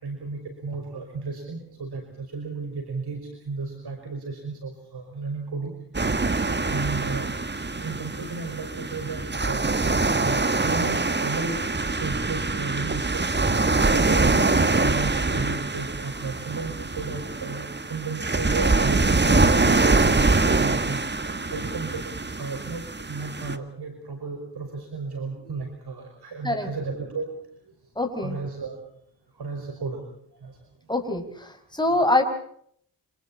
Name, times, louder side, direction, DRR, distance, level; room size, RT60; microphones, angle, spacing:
voice 1, 0.0-5.7 6.7-7.3 7.7-9.7 10.1-21.0 21.5-22.0 22.4-27.3 28.2-28.8 29.3-30.0 30.4-30.6, right 4 dB, 60° right, 4 dB, 5.6 m, -33 dB
sound 1, 5.9-23.6, right 3 dB, 25° right, 1.9 m, -24 dB
voice 2, 27.9-28.4 30.9-32.2, left 2 dB, 10° left, 4 dB, 6.5 m, -24 dB
29.0 x 27.5 x 4.3 m, 0.64 s
cardioid pair, 65°, 43 cm